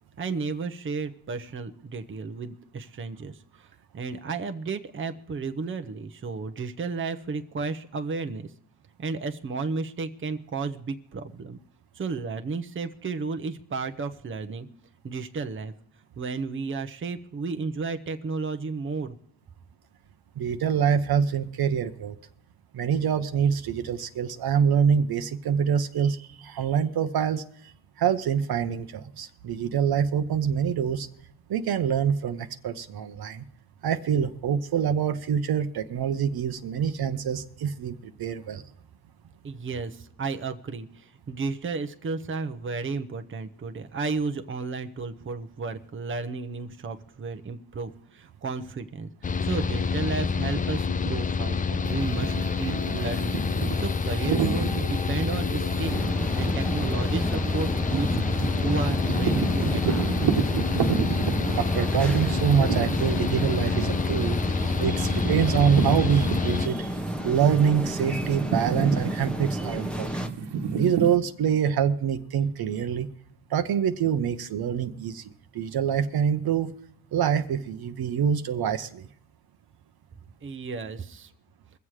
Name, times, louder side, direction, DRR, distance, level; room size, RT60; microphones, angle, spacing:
voice 1, 0.2-3.7 3.9-8.5 9.0-11.6 11.9-14.7 15.0-15.7 16.2-19.2 39.4-53.4 53.8-56.1 56.3-58.2 58.6-60.0 80.4-81.3, right 4 dB, 30° right, 8 dB, 0.9 m, -33 dB
voice 2, 20.4-22.2 22.7-27.7 28.0-31.1 31.5-33.4 33.8-38.6 61.4-66.9 67.2-70.2 70.8-73.1 73.5-76.7 77.1-79.0, right 8 dB, 60° right, 9 dB, 0.9 m, -25 dB
Mechanical fan, 49.2-66.7, left 5 dB, 20° left, 0.4 m, -27 dB
sound 1, 51.8-67.0 67.3-71.2, right 6 dB, 75° right, 1.5 m, -32 dB
sound 2, 55.8-70.3, right 1 dB, ahead, 1.0 m, -32 dB
22.5 x 7.5 x 4.8 m, 0.68 s
cardioid pair, 110°, 42 cm